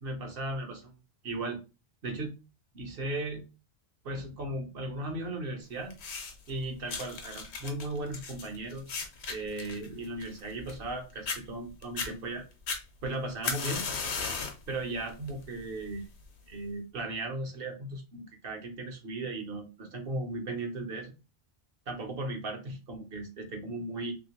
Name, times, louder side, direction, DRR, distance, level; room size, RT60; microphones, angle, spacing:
voice 1, 0.0-0.9 1.2-1.6 2.0-2.3 2.7-3.4 4.0-5.9 6.5-9.0 9.3-12.5 13.0-13.8 14.7-16.0 16.5-21.2 21.9-24.1, right 2 dB, 60° right, 4 dB, 1.0 m, -36 dB
sound 1, 5.9-6.5 6.9-10.9 11.3-11.4 11.8-12.1 12.7-14.6 15.1-15.4 16.2-16.3, left 4 dB, 80° left, 1.0 m, -36 dB
2.8 x 2.7 x 2.9 m, 0.29 s
omnidirectional pair, 1.1 m